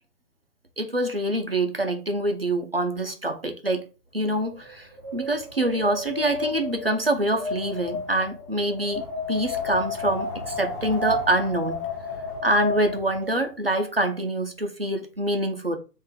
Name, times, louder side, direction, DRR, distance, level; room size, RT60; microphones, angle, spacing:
voice 1, 0.8-3.9 4.1-11.8 12.4-15.8, right 1 dB, 40° right, 0.4 m, -25 dB
Wind, 4.3-13.5, left 3 dB, 5° left, 0.7 m, -32 dB
3.6 x 2.5 x 4.3 m
hypercardioid pair, 155°, 49 cm